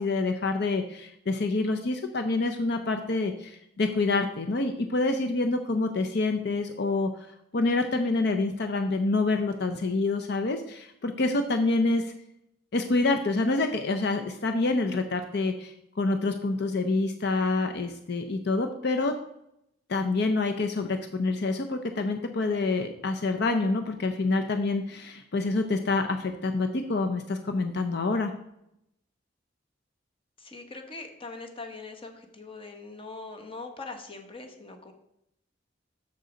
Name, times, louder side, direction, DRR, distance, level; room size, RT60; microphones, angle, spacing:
voice 1, 0.0-7.3 7.5-12.1 12.7-19.1 19.9-28.3, left 3 dB, 60° left, 6 dB, 0.6 m, -27 dB
voice 2, 30.4-34.9, left 3 dB, 30° left, 5 dB, 1.1 m, -42 dB
6.9 x 6.6 x 5.1 m, 0.79 s
head